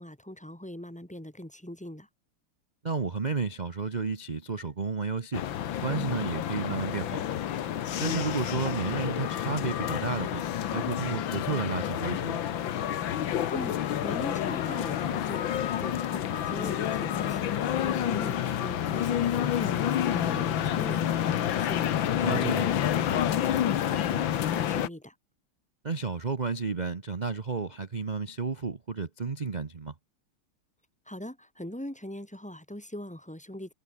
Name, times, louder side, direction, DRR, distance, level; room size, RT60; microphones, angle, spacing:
voice 1, 0.0-2.1 13.5-13.8 14.0-25.2 31.1-33.7, left 1 dB, 5° left, 5.5 m, -41 dB
voice 2, 2.8-5.5 5.8-7.2 8.0-10.4 10.7-12.4 22.2-22.7 25.8-29.9, right 4 dB, 40° right, 0.6 m, -32 dB
sound 1, 5.3-24.9, left 10 dB, 65° left, 1.8 m, -29 dB
omnidirectional pair, 2.3 m